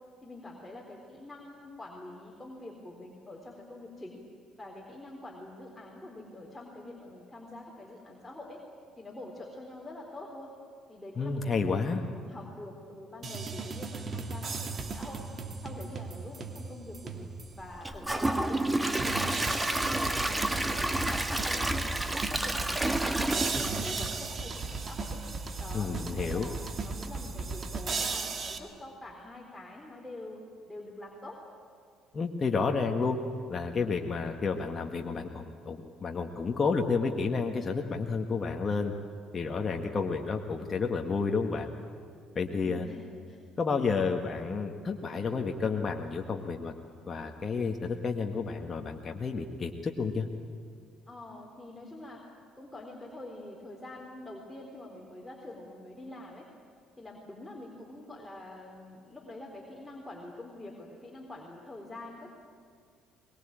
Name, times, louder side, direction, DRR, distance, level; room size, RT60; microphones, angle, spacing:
voice 1, 0.2-4.2 4.6-8.6 9.0-10.6 10.9-15.3 15.6-21.9 22.3-25.2 25.6-31.4 42.5-43.4 51.1-52.2 52.6-56.5 57.0-62.3, left 1 dB, 10° left, -2 dB, 4.0 m, -46 dB
voice 2, 11.2-12.0 25.7-26.5 32.1-33.2 33.5-38.9 39.3-41.7 42.4-42.9 43.6-46.7 47.1-50.3, left 4 dB, 35° left, 2 dB, 1.7 m, -30 dB
sound 1, 13.2-17.6 18.1-18.2 19.0-28.6, right 4 dB, 45° right, 2.2 m, -36 dB
Gurgling / Toilet flush / Trickle dribble, 17.8-24.9 25.3-25.4 25.9-26.0, right 1 dB, 15° right, 1.7 m, -30 dB
23.0 x 21.0 x 8.8 m, 2.2 s
hypercardioid pair, 55°, 0 cm